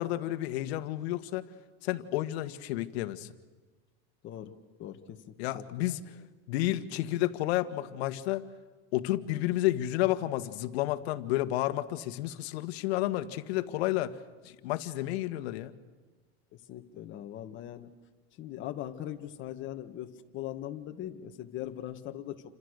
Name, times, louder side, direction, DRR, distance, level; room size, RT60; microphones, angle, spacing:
voice 1, 0.0-1.4 1.8-3.3 5.4-6.0 6.5-8.4 8.9-14.2 14.4-15.7, left 15 dB, 70° left, 10 dB, 1.7 m, -31 dB
voice 2, 4.2-4.5 4.8-5.6 16.7-17.9 18.4-22.4, left 12 dB, 35° left, 6 dB, 1.9 m, -40 dB
29.5 x 26.0 x 6.7 m, 1.3 s
supercardioid pair, 150°, 33 cm